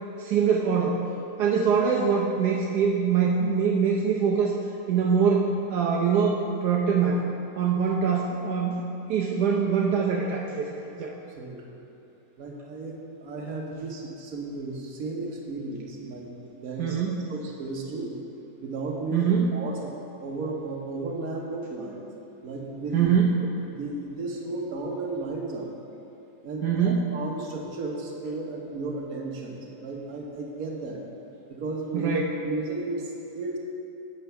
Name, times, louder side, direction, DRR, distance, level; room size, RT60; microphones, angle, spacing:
voice 1, 0.2-1.0 1.4-4.5 4.9-7.3 7.6-10.7 11.0-11.1 16.8-17.3 19.1-19.5 22.9-23.4 26.6-27.0 31.9-32.2, right 6 dB, 80° right, -2 dB, 1.3 m, -23 dB
voice 2, 11.3-11.8 12.4-17.0 17.3-18.2 18.6-19.9 20.2-22.0 22.4-23.1 23.6-25.7 26.4-31.0 31.5-32.1 32.4-33.6, right 3 dB, 65° right, -1 dB, 1.5 m, -34 dB
8.4 x 6.7 x 5.6 m, 2.9 s
omnidirectional pair, 1.7 m